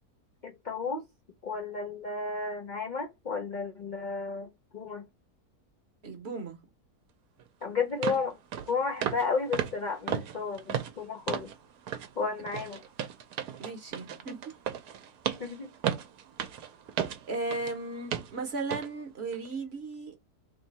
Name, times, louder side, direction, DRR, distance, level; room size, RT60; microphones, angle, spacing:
voice 1, 0.4-1.0 1.4-5.0 7.6-8.4 8.7-11.5 12.2-12.8 15.4-15.7, left 4 dB, 55° left, 0.5 m, -33 dB
voice 2, 6.0-6.6 13.6-14.4 17.3-20.1, right 3 dB, 50° right, 1.0 m, -36 dB
sound 1, 7.4-7.5 8.0-8.2 8.5-8.7 9.0-9.3 9.5-11.6 11.9-12.1 12.5-17.8 18.1-18.3 18.7-18.9 19.3-19.5, right 9 dB, 75° right, 1.1 m, -34 dB
3.3 x 2.7 x 4.0 m
omnidirectional pair, 1.7 m